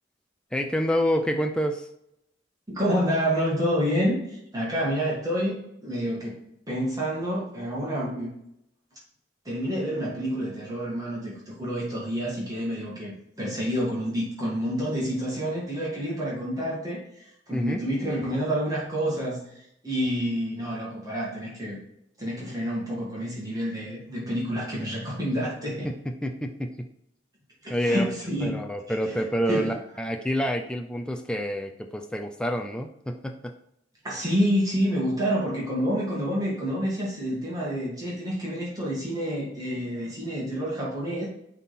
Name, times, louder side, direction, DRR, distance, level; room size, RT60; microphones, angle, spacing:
voice 1, 0.5-1.9 17.5-17.8 25.8-26.7 27.7-28.1 28.4-33.5, equal, 5° left, 3 dB, 0.4 m, -28 dB
voice 2, 2.7-6.4 6.7-8.3 9.5-21.8 22.2-25.9 27.6-28.6 28.9-29.7 34.0-41.3, equal, 20° right, -6 dB, 1.9 m, -28 dB
9.9 x 3.7 x 4.1 m, 0.79 s
head